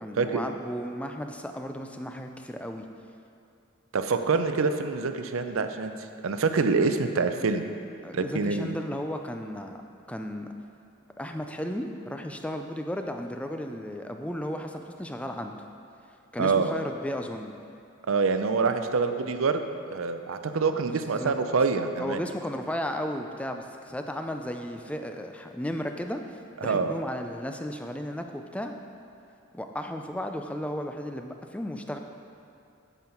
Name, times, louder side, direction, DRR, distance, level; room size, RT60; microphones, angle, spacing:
voice 1, 0.0-2.9 8.0-9.8 10.1-10.5 11.2-15.6 16.3-17.5 20.4-20.5 20.8-21.3 22.0-28.7 29.5-32.0, equal, 5° left, 5 dB, 0.4 m, -34 dB
voice 2, 3.9-5.9 6.2-7.6 8.1-8.7 16.4-16.7 18.1-22.2 26.6-26.9, right 4 dB, 70° right, 8 dB, 0.5 m, -26 dB
9.4 x 7.1 x 4.4 m, 2.5 s
head